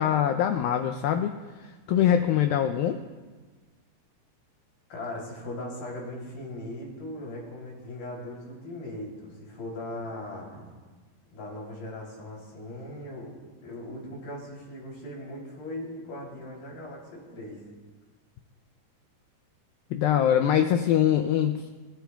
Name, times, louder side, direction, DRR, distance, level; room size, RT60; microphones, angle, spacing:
voice 1, 0.0-1.3 1.9-3.0 19.9-21.6, left 10 dB, 85° left, 7 dB, 2.1 m, -23 dB
voice 2, 4.9-10.7 11.3-13.4 13.6-17.6, left 1 dB, 60° left, -2 dB, 4.9 m, -39 dB
27.5 x 13.5 x 2.3 m, 1.4 s
omnidirectional pair, 4.8 m